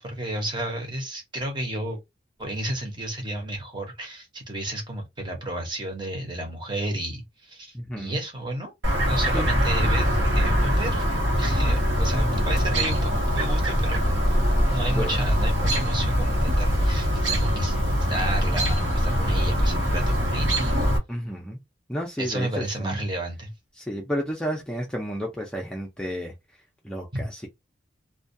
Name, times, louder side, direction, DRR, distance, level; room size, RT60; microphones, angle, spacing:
voice 1, 0.0-2.0 2.4-8.7 9.1-11.0 11.4-14.0 14.7-17.8 18.1-20.8 22.2-23.5 27.1-27.3, right 1 dB, 25° right, 0.8 m, -32 dB
voice 2, 7.7-8.2 9.3-9.5 12.1-12.5 15.0-15.1 21.1-21.6 21.9-23.0 23.8-26.3 26.8-27.5, equal, 5° left, 0.4 m, -31 dB
Chirp tweet, 8.8-21.0, equal, 80° right, 1.0 m, -23 dB
2.2 x 2.2 x 2.6 m
head